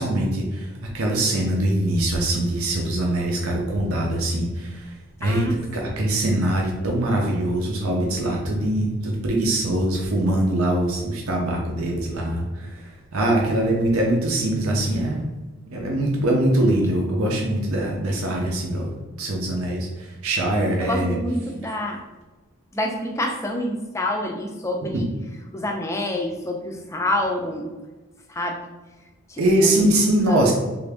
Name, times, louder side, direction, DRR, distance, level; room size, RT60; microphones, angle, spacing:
voice 1, 0.0-15.3 15.7-18.9 19.2-21.2 24.8-25.0 29.4-30.5, right 1 dB, 75° right, -1 dB, 0.6 m, -23 dB
voice 2, 5.2-5.9 20.8-22.0 22.7-25.1 25.5-27.7 28.3-28.6 29.3-29.8 30.3-30.4, left 1 dB, 15° left, 2 dB, 0.4 m, -27 dB
3.4 x 2.5 x 3.4 m, 1.2 s
head